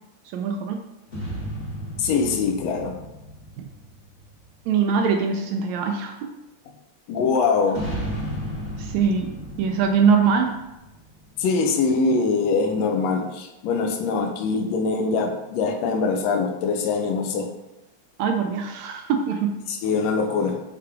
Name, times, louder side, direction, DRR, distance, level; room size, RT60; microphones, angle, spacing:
voice 1, 0.3-0.8 3.6-3.7 4.7-6.2 8.8-10.5 18.2-19.6, right 6 dB, 80° right, 4 dB, 1.7 m, -22 dB
sound 1, 1.1-4.8 7.7-11.5, equal, 30° left, 1.5 m, -34 dB
voice 2, 2.0-3.0 7.1-7.9 11.4-17.5 19.7-20.6, left 4 dB, 75° left, 4 dB, 1.8 m, -23 dB
8.2 x 3.4 x 3.6 m, 0.99 s
omnidirectional pair, 3.4 m